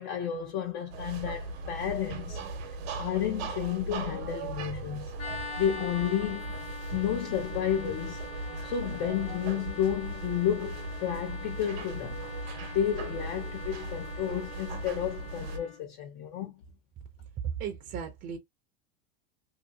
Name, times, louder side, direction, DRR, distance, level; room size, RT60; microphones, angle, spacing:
voice 1, 0.0-2.4 3.0-5.1 5.6-6.5 6.9-8.2 8.6-12.2 12.7-16.5, left 10 dB, 60° left, 0.7 m, -31 dB
sound 1, 0.9-15.6, right 3 dB, 85° right, 0.8 m, -38 dB
sound 2, 5.2-15.8, left 4 dB, 20° left, 0.5 m, -44 dB
voice 2, 17.4-18.4, right 8 dB, 30° right, 0.5 m, -35 dB
2.7 x 2.6 x 2.6 m
supercardioid pair, 140°, 31 cm